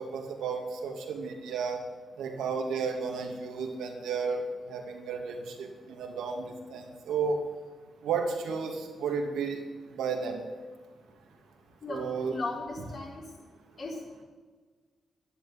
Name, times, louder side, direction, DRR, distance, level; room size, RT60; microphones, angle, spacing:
voice 1, 0.0-1.8 2.2-7.4 8.0-9.6 9.9-10.4 11.9-12.4, right 5 dB, 90° right, 2 dB, 2.7 m, -33 dB
voice 2, 12.3-13.2 13.8-14.0, left 3 dB, 55° left, -2 dB, 5.4 m, -36 dB
12.5 x 11.0 x 9.6 m, 1.4 s
cardioid pair, 70°, 0 cm